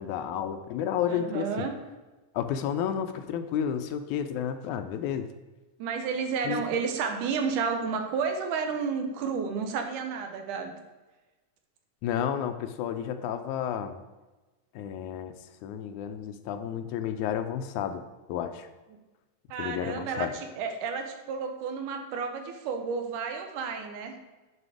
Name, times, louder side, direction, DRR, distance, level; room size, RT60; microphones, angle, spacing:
voice 1, 0.0-1.7 2.3-5.3 6.5-6.6 12.0-14.0 14.8-15.3 15.6-18.0 18.3-18.7 19.6-20.3, left 9 dB, 80° left, 9 dB, 1.9 m, -31 dB
voice 2, 1.1-1.8 5.8-10.7 19.5-24.2, right 5 dB, 80° right, 5 dB, 2.4 m, -31 dB
9.9 x 5.2 x 4.9 m, 1.2 s
omnidirectional pair, 3.6 m